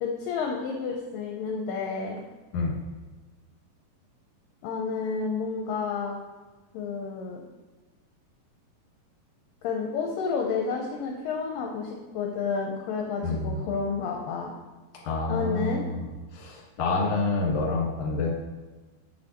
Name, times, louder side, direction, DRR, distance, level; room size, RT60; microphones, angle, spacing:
voice 1, 0.0-2.2 4.6-6.2 6.7-7.4 9.6-14.5 15.3-15.9, left 5 dB, 75° left, 1 dB, 2.2 m, -30 dB
voice 2, 13.2-13.6 15.0-16.0 16.3-18.3, left 3 dB, 50° left, -2 dB, 2.2 m, -27 dB
8.4 x 7.4 x 3.0 m, 1.2 s
omnidirectional pair, 4.3 m